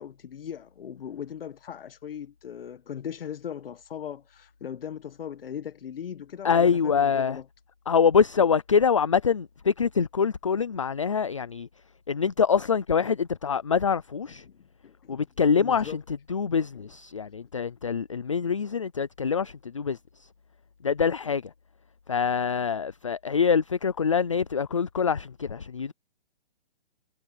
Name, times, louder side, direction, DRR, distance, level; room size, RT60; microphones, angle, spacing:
voice 1, 0.0-7.5 14.4-15.2 15.6-16.0 16.7-16.9 17.3-17.4, left 8 dB, 65° left, 1.2 m, -39 dB
voice 2, 6.4-7.4 7.9-11.7 12.1-14.4 15.1-16.0 16.3-20.0 20.8-21.5 22.1-25.9, left 6 dB, 35° left, 0.4 m, -25 dB
hypercardioid pair, 175°, 31 cm